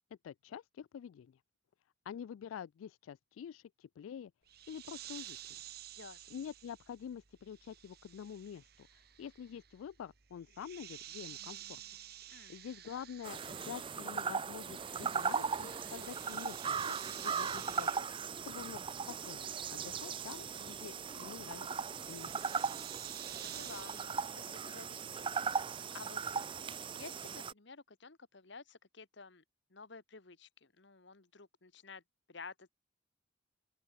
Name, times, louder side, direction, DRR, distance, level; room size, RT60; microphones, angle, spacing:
voice 1, 0.2-1.4 2.1-4.3 4.7-5.6 6.3-11.8 12.3-18.1 18.4-18.8 19.1-21.7 22.1-22.6, left 8 dB, 90° left, 0.3 m, -47 dB
sound 1, 4.5-14.2 14.4-24.2, right 12 dB, 50° right, 1.3 m, -52 dB
voice 2, 6.0-6.4 12.3-12.6 23.4-29.4 29.7-32.0 32.3-32.7, left 4 dB, 60° left, 1.4 m, -53 dB
sound 2, 13.2-27.5, right 6 dB, 25° right, 0.5 m, -38 dB
open air
head